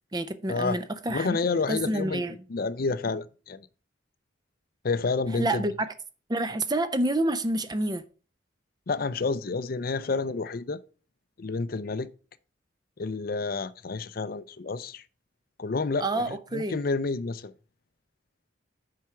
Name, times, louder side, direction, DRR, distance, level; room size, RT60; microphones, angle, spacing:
voice 1, 0.1-1.4 1.7-2.4 5.3-5.7 6.3-8.0 16.0-16.8, right 1 dB, 20° right, 0.5 m, -28 dB
voice 2, 1.1-2.2 2.5-3.7 4.8-5.6 8.9-10.8 11.4-12.1 13.0-15.0 15.6-17.5, left 4 dB, 50° left, 0.5 m, -29 dB
7.6 x 4.9 x 5.6 m
head